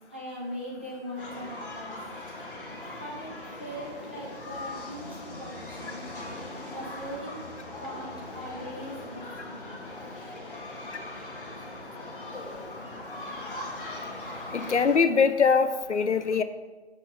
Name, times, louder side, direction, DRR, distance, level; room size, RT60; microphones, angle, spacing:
voice 1, 0.1-2.0 3.0-6.0 6.7-7.4 7.8-9.6 11.6-11.7, equal, 10° right, -6 dB, 0.4 m, -40 dB
sound 1, 1.2-15.0, left 2 dB, 50° left, 1.6 m, -40 dB
voice 2, 14.5-16.4, left 5 dB, 80° left, 11 dB, 0.6 m, -22 dB
6.6 x 6.3 x 3.7 m, 1.2 s
figure-of-eight pair, 140°, 35 cm